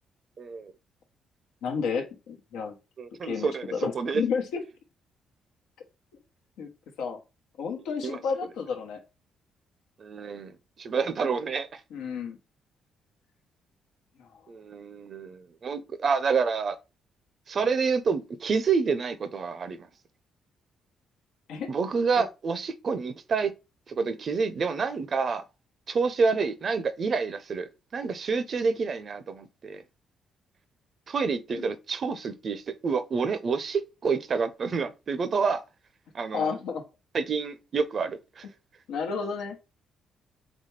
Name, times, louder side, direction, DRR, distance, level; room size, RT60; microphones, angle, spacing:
voice 1, 0.4-0.7 3.0-4.2 8.0-8.2 10.0-10.5 10.8-11.8 14.5-16.8 17.5-19.9 21.7-23.5 23.9-25.4 25.9-29.8 31.1-35.6 36.1-36.5 37.1-38.4, right 5 dB, 50° right, 0.6 m, -28 dB
voice 2, 1.6-2.7 3.2-4.6 6.6-6.7 7.0-7.2 7.6-9.0 11.9-12.4 14.2-14.3 21.5-21.7 31.6-31.7 36.3-36.8 38.9-39.6, left 5 dB, 90° left, 1.0 m, -31 dB
4.1 x 3.4 x 3.2 m
cardioid pair, 90°, 0 cm